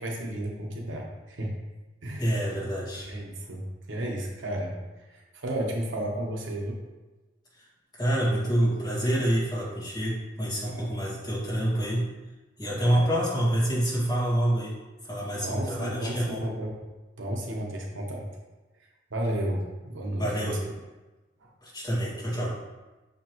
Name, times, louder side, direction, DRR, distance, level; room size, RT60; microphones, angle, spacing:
voice 1, 0.0-1.5 2.0-2.4 3.1-4.7 5.1-6.8 8.6-8.7 10.6-10.9 12.8-13.1 15.4-16.8 17.2-18.3 19.1-20.6 21.4-21.5, right 1 dB, 70° right, 0 dB, 1.0 m, -33 dB
voice 2, 2.2-3.1 7.6-7.7 8.0-12.1 12.6-14.8 15.1-16.4 20.2-20.6 21.6-22.6, right 1 dB, 20° left, -8 dB, 1.9 m, -27 dB
6.3 x 4.9 x 3.0 m, 1.2 s
head